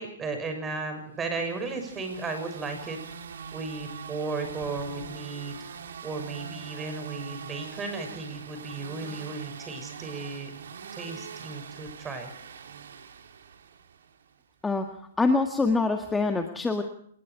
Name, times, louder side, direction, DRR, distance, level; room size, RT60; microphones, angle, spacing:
voice 1, 0.0-3.0 3.5-5.5 6.0-10.5 10.9-12.3, right 3 dB, 15° right, 6 dB, 6.4 m, -35 dB
sound 1, 1.3-14.2, right 6 dB, 75° right, 3.1 m, -43 dB
voice 2, 15.2-16.8, left 3 dB, 10° left, 5 dB, 1.8 m, -24 dB
27.5 x 20.5 x 4.7 m, 0.63 s
hypercardioid pair, 145°, 0 cm